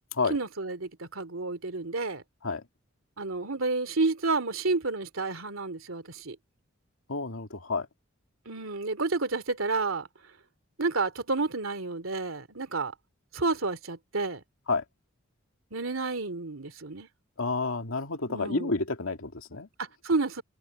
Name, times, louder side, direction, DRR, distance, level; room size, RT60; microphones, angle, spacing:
voice 1, 0.3-2.2 3.2-6.4 8.5-10.1 10.8-12.9 13.3-14.4 15.7-17.1 18.3-18.8 19.8-20.4, right 3 dB, 80° right, 2.8 m, -30 dB
voice 2, 7.1-7.9 14.7-14.8 17.4-19.7, left 3 dB, 85° left, 2.2 m, -30 dB
head